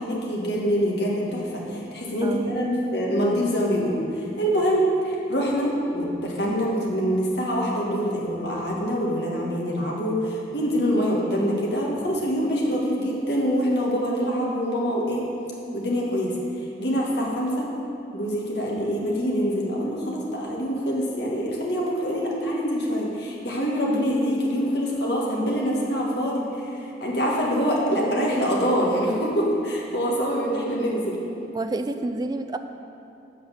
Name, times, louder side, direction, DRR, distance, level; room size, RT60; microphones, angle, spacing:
voice 1, 0.0-4.0 4.4-15.2 15.7-16.3 16.8-17.7 18.1-26.4 27.0-31.2, equal, 65° left, -3 dB, 1.7 m, -25 dB
voice 2, 2.2-2.6 31.5-32.6, right 2 dB, 20° right, 8 dB, 0.3 m, -29 dB
8.1 x 5.7 x 6.6 m, 2.8 s
head